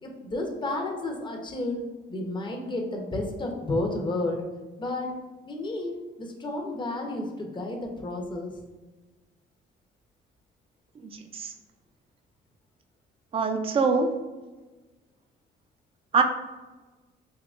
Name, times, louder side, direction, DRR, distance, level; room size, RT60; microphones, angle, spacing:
voice 1, 0.0-1.8 2.1-4.4 4.8-5.1 5.5-8.5, left 2 dB, 25° left, 1 dB, 0.6 m, -31 dB
voice 2, 11.0-11.5 13.3-14.1 16.1-16.2, right 5 dB, 30° right, 6 dB, 0.4 m, -24 dB
3.7 x 2.8 x 2.4 m, 1.2 s
cardioid pair, 90°, 20 cm